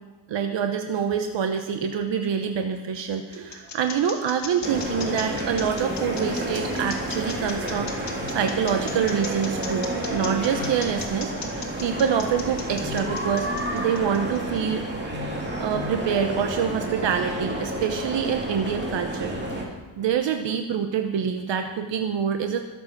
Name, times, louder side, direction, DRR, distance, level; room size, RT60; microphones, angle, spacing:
voice 1, 0.3-14.8 15.6-19.3 20.0-22.6, right 7 dB, 75° right, 6 dB, 1.0 m, -26 dB
sound 1, 2.5-14.6, left 5 dB, 40° left, 2.2 m, -37 dB
sound 2, 4.6-19.7, right 1 dB, 25° right, 2.5 m, -30 dB
21.0 x 7.4 x 6.0 m, 1.3 s
wide cardioid pair, 170°, 44 cm